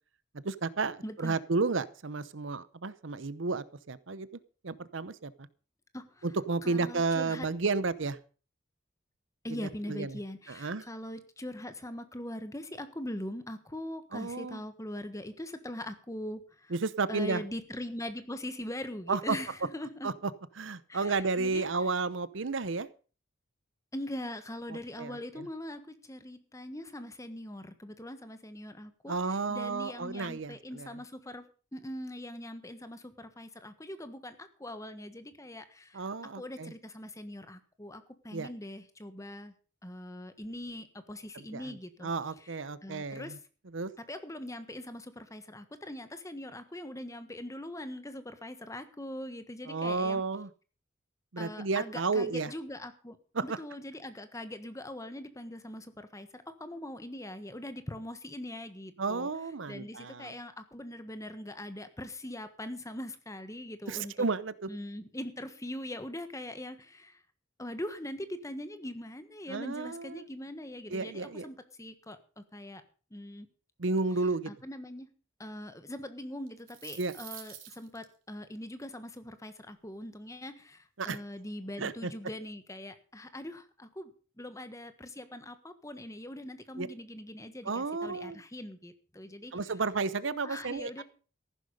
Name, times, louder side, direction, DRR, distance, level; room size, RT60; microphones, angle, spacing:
voice 1, 0.4-4.3 4.6-5.3 6.2-8.2 9.5-10.2 10.5-10.8 14.1-14.6 16.7-17.4 19.1-19.4 20.0-20.3 20.6-22.9 24.7-25.5 29.1-30.9 35.9-36.7 38.3-38.5 41.3-41.8 42.0-43.4 43.7-43.9 49.7-50.5 51.3-52.5 53.3-53.6 59.0-60.3 63.9-64.7 69.5-70.3 70.9-71.5 73.8-74.5 77.0-77.1 81.0-81.2 81.8-82.1 86.8-86.9 87.6-88.4 89.5-91.0, right 4 dB, 70° right, 17 dB, 0.8 m, -32 dB
voice 2, 1.0-1.4 5.9-6.2 6.6-7.5 9.4-16.7 17.1-20.1 20.9-21.7 23.9-31.5 31.7-36.1 36.4-39.5 39.8-42.1 42.4-42.6 42.8-43.4 44.0-50.2 51.4-53.2 53.4-59.3 59.7-64.1 64.7-67.2 67.6-72.8 73.1-73.5 74.5-75.1 75.4-84.1 84.4-89.5 90.4-91.0, left 1 dB, 15° left, 10 dB, 1.4 m, -42 dB
sound 1, 76.5-78.0, right 11 dB, 90° right, 3.1 m, -47 dB
14.5 x 11.5 x 5.4 m, 0.39 s
head